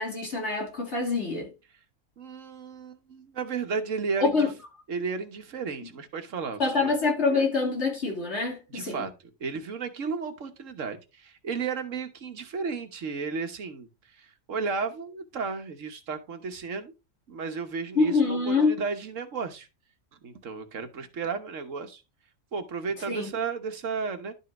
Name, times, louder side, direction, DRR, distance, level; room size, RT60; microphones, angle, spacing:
voice 1, 0.0-1.5 4.2-4.5 6.6-9.0 18.0-18.7 23.1-23.3, left 4 dB, 55° left, 2.7 m, -25 dB
voice 2, 2.2-4.5 4.9-6.9 8.7-9.1 9.4-16.9 17.3-19.7 20.2-22.0 22.5-24.3, right 5 dB, 75° right, 1.4 m, -33 dB
11.5 x 5.5 x 3.0 m
omnidirectional pair, 1.3 m